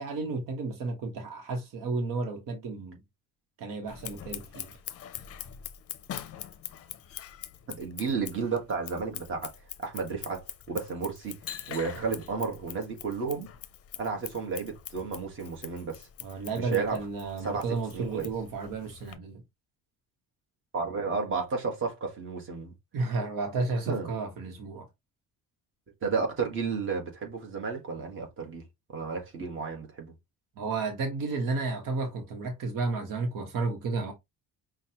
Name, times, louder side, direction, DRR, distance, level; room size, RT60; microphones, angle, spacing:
voice 1, 0.0-3.0 3.6-4.8 16.2-19.4 22.9-24.9 30.6-34.1, right 3 dB, 70° right, 1.2 m, -32 dB
Scissors, 3.9-19.2, left 10 dB, 45° left, 0.5 m, -44 dB
voice 2, 7.7-9.5 9.8-11.3 11.7-13.5 14.0-16.1 16.5-17.0 17.4-17.7 17.9-18.3 20.7-22.7 23.9-24.1 26.0-28.6 28.9-30.1, right 5 dB, 35° right, 1.4 m, -32 dB
5.7 x 2.3 x 2.8 m
cardioid pair, 150°, 34 cm